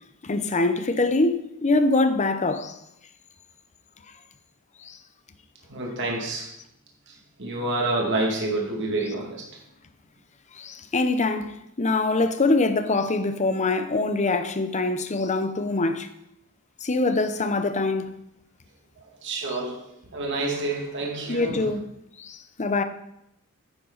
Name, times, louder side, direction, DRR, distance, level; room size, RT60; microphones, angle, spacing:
voice 1, 0.2-2.8 4.8-5.0 10.5-16.1 16.8-18.1 19.5-19.6 21.3-21.8 22.2-22.8, left 3 dB, 30° left, 0.7 m, -24 dB
voice 2, 5.7-6.5 7.4-9.4 19.2-19.8 20.1-21.7, right 2 dB, 55° right, 2.3 m, -28 dB
10.5 x 9.1 x 4.0 m
head